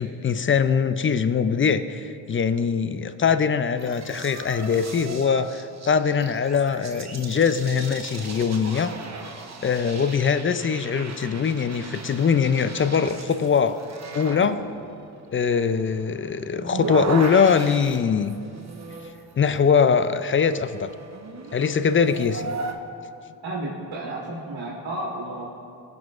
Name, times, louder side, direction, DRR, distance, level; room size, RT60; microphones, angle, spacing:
voice 1, 0.0-8.9 9.6-13.8 14.1-14.6 15.3-18.3 19.4-20.9 21.5-22.5, left 6 dB, 30° left, 12 dB, 0.4 m, -22 dB
sound 1, 3.8-22.7, right 4 dB, 35° right, 1.0 m, -37 dB
voice 2, 23.4-25.5, right 1 dB, 65° right, -5 dB, 1.9 m, -32 dB
17.0 x 6.0 x 2.5 m, 2.5 s
supercardioid pair, 50°, 48 cm